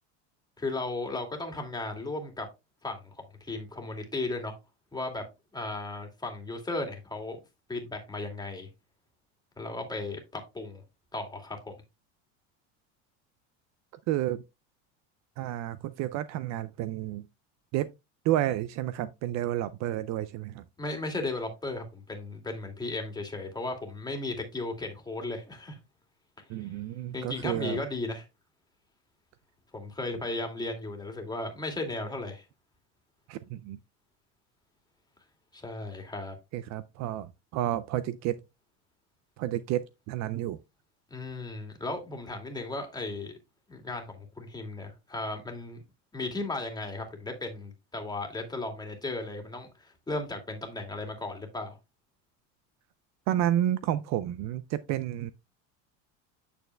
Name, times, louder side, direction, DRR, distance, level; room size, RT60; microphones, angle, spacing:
voice 1, 0.6-2.5 2.8-4.5 4.9-5.2 5.5-7.4 7.7-8.7 9.6-10.8 11.1-11.7 20.8-25.8 26.6-26.7 27.1-28.2 29.7-32.4 35.5-36.4 41.1-43.3 43.7-45.8 46.1-51.8, left 2 dB, 10° left, 2.2 m, -35 dB
voice 2, 14.1-14.4 15.4-17.2 17.7-17.9 18.2-20.6 26.5-27.8 33.3-33.8 36.5-38.4 39.4-40.6 53.3-55.3, right 12 dB, 50° right, 0.4 m, -30 dB
8.7 x 6.7 x 2.2 m
supercardioid pair, 110°, 36 cm